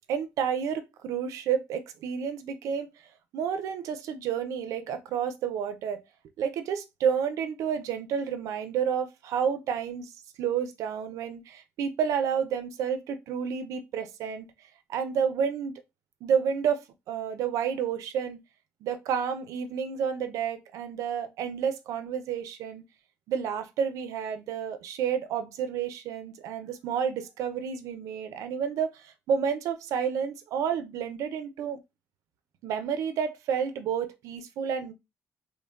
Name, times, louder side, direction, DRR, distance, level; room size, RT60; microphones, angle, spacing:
voice 1, 0.1-2.9 3.3-6.0 6.4-10.1 10.4-14.5 14.9-15.7 16.2-18.4 18.8-22.8 23.3-31.8 32.6-34.9, right 7 dB, 85° right, 0.4 m, -30 dB
3.1 x 2.2 x 2.2 m
cardioid pair, 125°, 5 cm